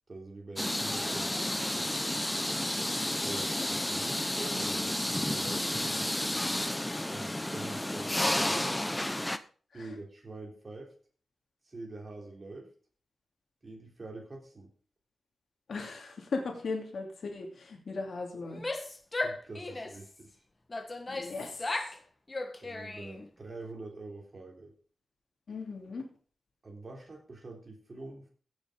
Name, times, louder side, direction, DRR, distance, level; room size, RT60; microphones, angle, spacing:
voice 1, 0.1-1.9 3.2-6.1 7.1-8.2 8.4-8.9 9.7-10.9 11.6-12.7 13.6-14.7 19.2-20.4 22.6-24.7 26.6-28.3, right 2 dB, 40° right, 0 dB, 3.4 m, -45 dB
sound 1, 0.6-9.4, left 1 dB, 10° left, 0.8 m, -31 dB
voice 2, 15.7-18.6 21.1-21.8 25.5-26.1, left 3 dB, 65° left, 1 dB, 2.7 m, -38 dB
Female speech woman speaking / Yell, 18.4-20.1 20.7-22.0 22.3-23.3, left 2 dB, 25° left, 1.6 m, -36 dB
16.5 x 6.4 x 5.1 m, 0.42 s
wide cardioid pair, 110°, 0 cm